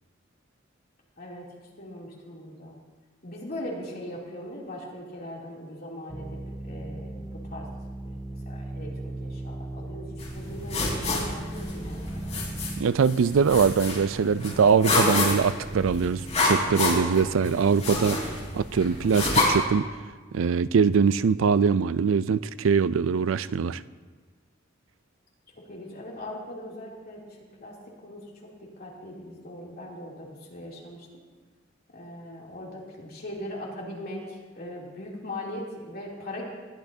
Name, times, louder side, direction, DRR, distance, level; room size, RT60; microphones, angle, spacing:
voice 1, 1.2-1.5 1.8-2.8 3.2-7.7 8.0-12.4 25.5-31.2 31.9-36.4, left 1 dB, 50° left, -4 dB, 2.9 m, -40 dB
sound 1, 6.1-12.8, right 1 dB, 10° right, 0.4 m, -37 dB
sound 2, 10.2-19.4, left 2 dB, 35° left, 4.0 m, -29 dB
voice 2, 12.8-19.9 20.3-23.8, right 6 dB, 85° right, 16 dB, 0.4 m, -23 dB
20.5 x 12.0 x 2.7 m, 1.4 s
head